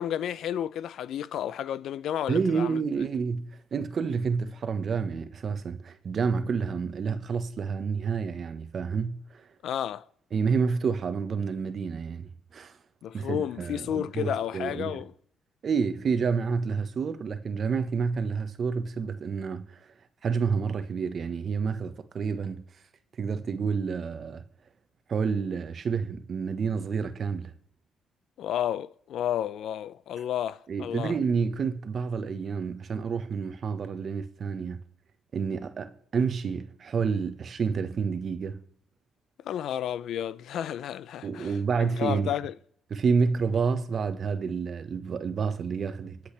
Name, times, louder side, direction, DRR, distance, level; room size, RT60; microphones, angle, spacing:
voice 1, 0.0-2.8 9.6-10.0 13.0-15.1 28.4-31.1 39.4-41.5 41.8-42.5, left 10 dB, 75° left, 0.6 m, -31 dB
voice 2, 2.3-9.4 10.3-12.8 13.1-15.0 15.6-19.8 20.2-22.6 23.2-24.4 25.1-27.5 30.7-34.8 35.3-38.6 41.2-42.3 42.9-46.2, right 5 dB, 50° right, 1.3 m, -29 dB
22.5 x 8.1 x 3.4 m
cardioid pair, 90°, 0 cm